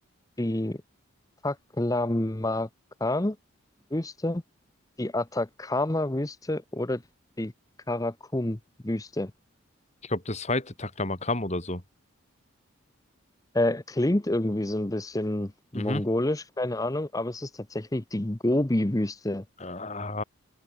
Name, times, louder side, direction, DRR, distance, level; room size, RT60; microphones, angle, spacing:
voice 1, 0.4-0.8 1.4-2.7 3.0-3.4 3.9-4.4 5.0-7.0 7.4-7.5 7.9-9.3 13.5-19.4, left 1 dB, 15° left, 0.8 m, -28 dB
voice 2, 10.1-11.8 15.7-16.0 19.6-20.2, left 2 dB, 30° left, 2.8 m, -30 dB
open air
head